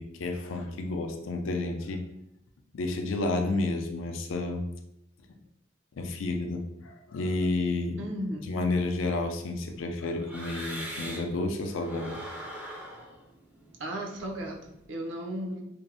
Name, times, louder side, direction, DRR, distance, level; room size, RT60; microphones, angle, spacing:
voice 1, 0.0-2.0 2.7-4.6 6.0-8.0 8.4-12.2, left 2 dB, 80° left, 5 dB, 0.4 m, -31 dB
voice 2, 8.0-8.5 13.8-15.7, right 1 dB, 70° right, 1 dB, 0.5 m, -35 dB
sound 1, 8.8-11.4 11.7-14.8, equal, 10° right, 0.4 m, -43 dB
2.6 x 2.0 x 2.7 m, 0.82 s
head